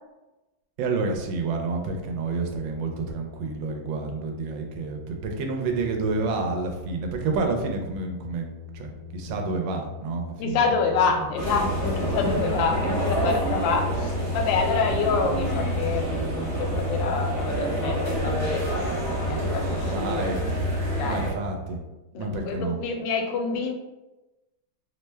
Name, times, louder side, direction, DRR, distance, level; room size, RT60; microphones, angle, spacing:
voice 1, 0.8-8.5 8.7-10.6 19.8-20.4 21.0-21.8 22.1-22.8, right 3 dB, 85° right, 3 dB, 1.3 m, -29 dB
sound 1, 5.7-21.8, left 3 dB, 60° left, 0.8 m, -42 dB
voice 2, 10.4-18.9 19.2-20.3 21.0-21.2 22.1-23.7, left 4 dB, 80° left, 3 dB, 1.3 m, -27 dB
sound 2, 11.4-21.3, equal, 60° right, 0.7 m, -27 dB
3.2 x 2.1 x 3.2 m, 1.0 s
omnidirectional pair, 2.0 m